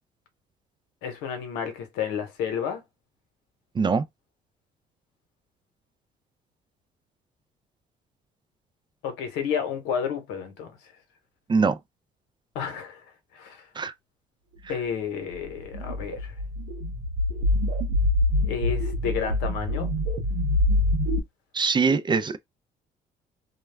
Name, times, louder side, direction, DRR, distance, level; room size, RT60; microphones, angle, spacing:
voice 1, 1.0-2.8 9.0-10.8 12.5-13.0 13.3-13.7 14.7-16.3 18.4-19.9, left 7 dB, 90° left, 0.9 m, -31 dB
sound 1, 15.4-21.2, left 1 dB, 85° right, 0.8 m, -25 dB
voice 2, 21.5-22.4, right 5 dB, 25° right, 0.4 m, -22 dB
2.3 x 2.1 x 3.3 m
supercardioid pair, 75°, 18 cm